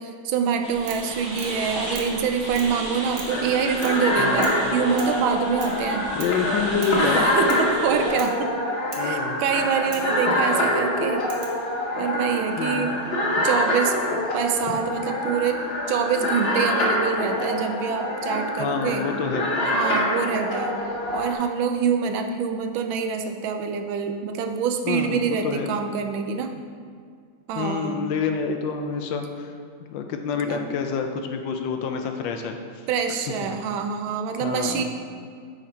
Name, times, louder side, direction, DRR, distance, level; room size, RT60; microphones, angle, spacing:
voice 1, 0.0-6.1 7.0-8.6 9.0-11.3 12.0-12.9 13.4-14.0 14.3-19.1 19.6-20.8 21.1-26.6 27.5-28.0 30.4-30.7 32.9-34.8, right 6 dB, 80° right, 5 dB, 1.4 m, -26 dB
Heavy Rain On Plastic Roof, 0.6-8.1, right 1 dB, 30° right, 1.5 m, -35 dB
sound 1, 0.9-1.1 1.4-1.6 1.9-2.2 2.6-2.8 3.2-3.4 3.8-4.1 4.4-4.6 5.0-5.2 5.6-5.8 6.2-6.4 6.8-7.0 7.5-7.7 8.2-8.4 8.9-9.1 9.9-10.1 11.3-11.6 12.8-13.3, right 4 dB, 60° right, 1.2 m, -40 dB
sound 2, 3.3-21.3, left 1 dB, 45° left, 0.8 m, -25 dB
voice 2, 6.1-7.3 9.0-9.4 12.6-12.9 18.6-19.5 24.8-25.7 27.5-29.5 29.9-32.8 33.4-33.5 34.4-34.8, left 6 dB, 75° left, 5 dB, 1.2 m, -27 dB
9.9 x 3.8 x 4.3 m, 2.1 s
omnidirectional pair, 2.2 m